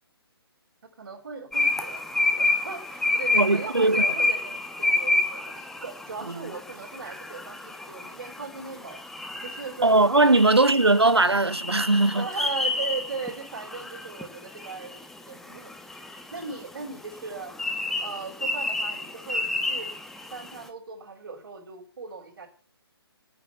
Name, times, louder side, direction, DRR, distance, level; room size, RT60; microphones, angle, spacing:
voice 1, 1.0-2.1 2.3-9.0 9.4-10.5 12.2-15.8 16.3-17.5 18.0-19.9 20.3-22.5, right 4 dB, 60° right, 5.3 m, -38 dB
sound 1, 1.5-20.5, left 2 dB, ahead, 1.0 m, -29 dB
voice 2, 3.3-4.0 6.2-6.4 9.8-12.3, right 2 dB, 85° right, 0.8 m, -20 dB
9.6 x 9.3 x 8.9 m
figure-of-eight pair, 135°, 13 cm